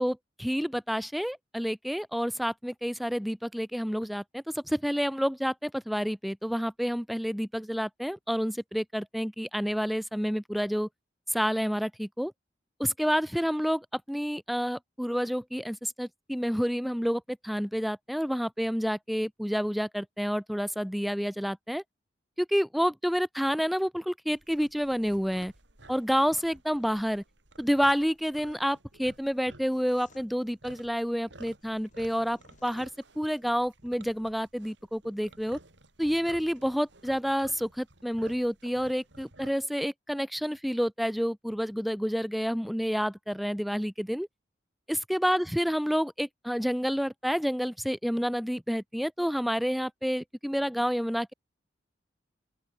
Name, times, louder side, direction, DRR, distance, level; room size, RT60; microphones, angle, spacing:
voice 1, 0.0-10.9 11.3-12.3 12.8-21.8 22.4-25.5 25.9-27.2 27.6-32.9 33.2-35.6 36.0-44.3 44.9-51.3, equal, ahead, 0.4 m, -29 dB
sound 1, 24.3-39.7, right 2 dB, 70° right, 5.0 m, -54 dB
sound 2, 29.7-33.4, left 2 dB, 45° left, 7.0 m, -61 dB
open air
head